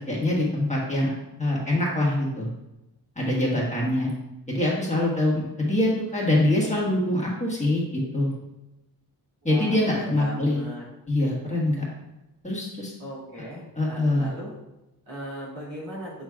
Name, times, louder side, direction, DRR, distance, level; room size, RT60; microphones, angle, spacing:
voice 1, 0.1-1.1 1.4-2.5 3.2-4.1 4.5-8.3 9.4-10.6 11.1-11.8 12.4-12.9 13.7-14.3, left 1 dB, 20° left, -5 dB, 1.5 m, -24 dB
voice 2, 9.4-10.8 13.0-14.5 15.1-16.1, equal, 65° right, -6 dB, 2.6 m, -38 dB
8.5 x 6.1 x 2.4 m, 0.97 s
wide cardioid pair, 160°, 38 cm